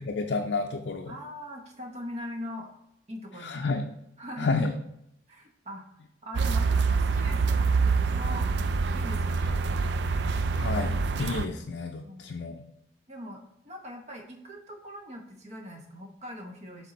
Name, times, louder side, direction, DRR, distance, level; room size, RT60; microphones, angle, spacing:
voice 1, 0.0-1.1 3.4-3.9 4.4-4.7 10.3-12.6, left 3 dB, 65° left, 3 dB, 0.4 m, -30 dB
voice 2, 1.1-2.7 3.1-3.9 4.2-4.7 5.3-5.9 6.2-8.5 8.9-9.6 12.0-12.3 13.1-16.9, equal, 40° right, 2 dB, 0.9 m, -41 dB
sound 1, 6.3-11.4, right 4 dB, 65° right, 0.3 m, -26 dB
6.9 x 3.7 x 4.1 m, 0.78 s
head